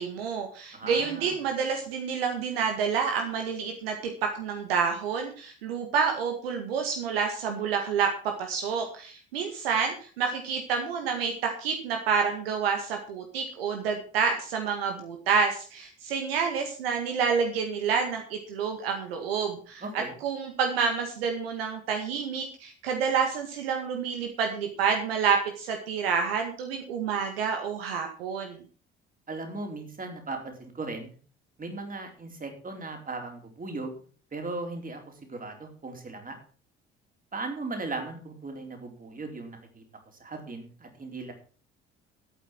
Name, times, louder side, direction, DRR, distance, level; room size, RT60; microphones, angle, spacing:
voice 1, 0.0-28.6, right 6 dB, 70° right, 4 dB, 2.0 m, -28 dB
voice 2, 0.7-1.3 19.8-20.1 29.3-31.2 31.6-34.0 34.3-36.4 37.3-39.8 40.2-41.3, right 3 dB, 25° right, 4 dB, 4.2 m, -37 dB
12.5 x 8.8 x 6.1 m, 0.40 s
figure-of-eight pair, 50°, 31 cm